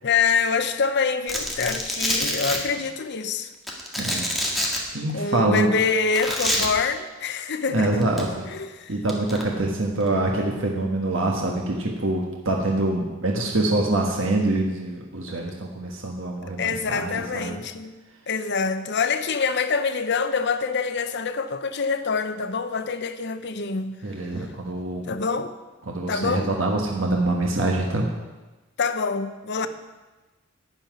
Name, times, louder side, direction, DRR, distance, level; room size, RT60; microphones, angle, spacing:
voice 1, 0.0-3.5 5.1-8.0 8.5-8.9 16.4-17.9 18.3-24.0 25.1-25.5 26.1-26.5 28.8-29.7, left 5 dB, 60° left, 0.8 m, -25 dB
Domestic sounds home sounds, 1.3-2.6 3.7-4.8 6.1-6.7 8.0-8.2 9.1-9.4, equal, ahead, 1.9 m, -26 dB
voice 2, 4.0-4.3 4.9-5.7 7.7-8.4 8.9-17.6 24.0-25.0 25.9-28.1, right 2 dB, 70° right, 1.4 m, -25 dB
12.0 x 5.7 x 9.2 m
head